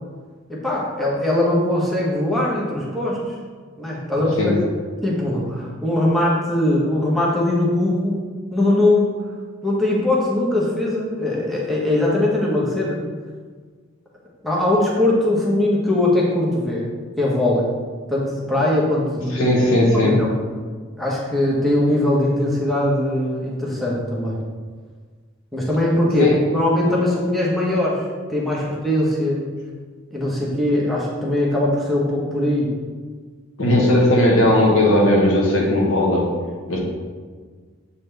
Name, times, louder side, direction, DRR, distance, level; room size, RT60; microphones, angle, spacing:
voice 1, 0.5-3.2 3.8-4.5 5.0-8.2 8.5-9.2 9.6-13.0 14.4-16.8 17.2-17.7 18.1-19.5 19.9-20.4 21.0-24.4 25.5-28.0 28.3-29.4 30.1-32.7, left 1 dB, ahead, -6 dB, 1.0 m, -20 dB
voice 2, 19.3-20.2 26.2-26.3 33.6-36.3 36.7-36.8, left 1 dB, 80° left, -2 dB, 1.3 m, -17 dB
7.6 x 4.0 x 3.3 m, 1.5 s
head